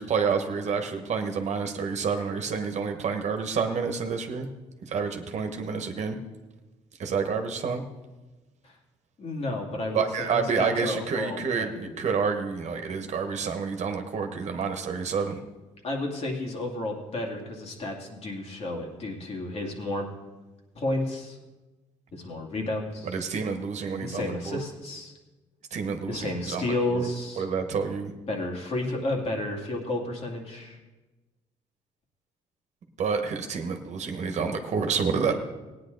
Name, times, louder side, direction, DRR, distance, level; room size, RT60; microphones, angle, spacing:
voice 1, 0.0-4.5 4.9-6.2 7.0-7.8 9.9-15.4 23.0-24.6 25.7-27.1 27.4-28.1 33.0-35.3, right 5 dB, 60° right, 5 dB, 1.3 m, -29 dB
voice 2, 9.2-12.0 15.8-20.1 20.7-21.4 22.1-23.1 24.0-25.1 26.1-27.4 28.3-30.8 35.2-35.3, left 2 dB, 50° left, 0 dB, 2.5 m, -32 dB
17.0 x 9.4 x 4.0 m, 1.2 s
cardioid pair, 80°, 14 cm